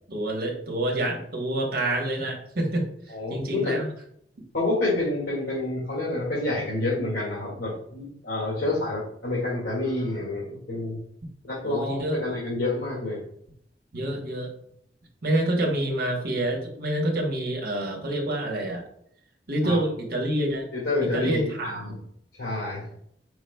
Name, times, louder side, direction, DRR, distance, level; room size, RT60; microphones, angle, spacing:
voice 1, 0.1-2.9 3.3-3.9 11.6-12.2 13.9-14.5 15.2-18.8 19.5-20.7 21.0-22.0, right 1 dB, 55° right, 1 dB, 1.1 m, -27 dB
voice 2, 3.1-3.8 4.5-11.0 11.4-13.2 19.6-19.8 20.7-21.9 22.4-22.9, left 2 dB, 85° left, -8 dB, 1.8 m, -28 dB
4.9 x 4.7 x 2.2 m, 0.69 s
head